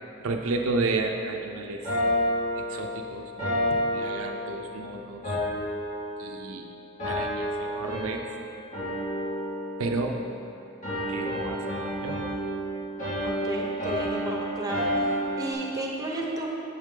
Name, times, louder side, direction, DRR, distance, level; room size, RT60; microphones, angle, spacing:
voice 1, 0.2-1.9 2.7-5.4 6.2-6.7 7.0-8.2 9.8-10.2 11.1-12.2, right 3 dB, 75° right, 3 dB, 0.5 m, -32 dB
sound 1, 1.8-4.8 5.2-6.6 7.0-8.4 8.7-10.4 10.8-15.5, equal, 35° left, 1.8 m, -30 dB
voice 2, 13.2-16.5, right 1 dB, 15° right, -1 dB, 0.9 m, -33 dB
8.0 x 7.3 x 3.8 m, 2.7 s
head